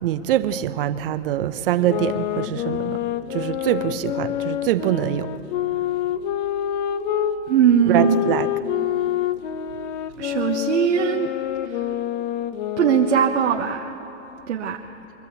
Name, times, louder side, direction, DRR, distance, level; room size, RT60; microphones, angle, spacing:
voice 1, 0.0-3.0 3.3-5.3 7.9-8.5, right 12 dB, 50° right, 0.9 m, -24 dB
sound 1, 1.7-7.4 7.9-13.5, left 11 dB, 35° left, 0.9 m, -27 dB
voice 2, 7.5-8.2 10.2-11.3 11.7-11.8 12.8-13.9 14.5-14.8, right 8 dB, 65° right, 1.3 m, -20 dB
24.0 x 13.5 x 8.3 m
hypercardioid pair, 135°, 37 cm